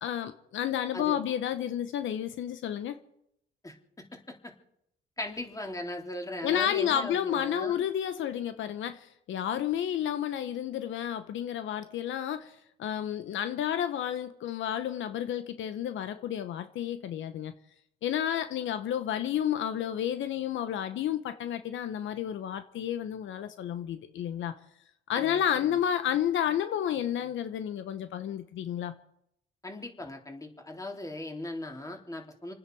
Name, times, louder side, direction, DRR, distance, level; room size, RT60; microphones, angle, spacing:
voice 1, 0.0-3.0 6.4-17.5 18.0-24.5 25.1-28.9, left 10 dB, 75° left, 1.0 m, -31 dB
voice 2, 3.6-4.5 5.2-7.8 25.1-25.8 29.6-32.5, left 1 dB, 15° left, 3.4 m, -39 dB
29.0 x 9.8 x 4.7 m
cardioid pair, 90°, 20 cm